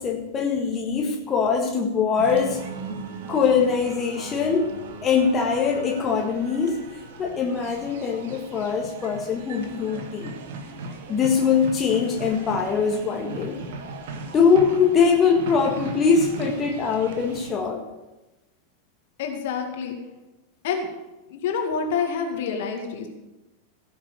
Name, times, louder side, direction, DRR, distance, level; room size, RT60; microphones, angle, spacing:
voice 1, 0.0-2.7 3.3-4.8 5.0-6.9 7.2-10.3 11.1-13.6 14.3-17.8, left 6 dB, 25° left, 1 dB, 1.7 m, -22 dB
sound 1, 2.2-17.5, right 3 dB, 55° right, 1.6 m, -38 dB
voice 2, 19.2-20.0 20.6-20.9 21.3-23.1, left 6 dB, 55° left, 3 dB, 2.1 m, -27 dB
16.5 x 6.8 x 6.8 m, 1.0 s
figure-of-eight pair, 90°, 0 cm